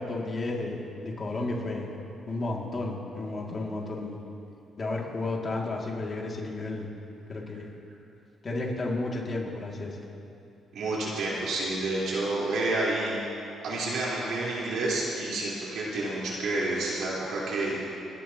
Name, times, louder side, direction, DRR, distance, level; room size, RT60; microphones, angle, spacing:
voice 1, 0.0-1.9 2.3-4.2 4.8-6.9 7.3-7.7 8.4-10.0, left 2 dB, 35° left, -1 dB, 2.4 m, -32 dB
voice 2, 10.7-13.1 13.6-17.8, right 2 dB, 75° right, -6 dB, 4.0 m, -29 dB
29.5 x 11.5 x 3.0 m, 2.7 s
cardioid pair, 90°, 0 cm